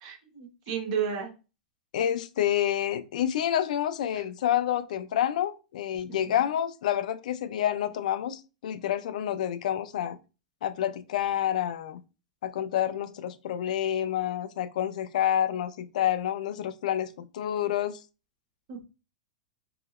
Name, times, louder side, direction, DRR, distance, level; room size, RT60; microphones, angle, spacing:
voice 1, 0.0-1.3 4.1-4.2 6.1-6.4 18.7-18.8, right 7 dB, 50° right, 1.0 m, -33 dB
voice 2, 1.9-10.2 10.6-12.0 12.4-18.0, left 10 dB, 75° left, 0.3 m, -28 dB
2.8 x 2.8 x 2.4 m
hypercardioid pair, 130°, 4 cm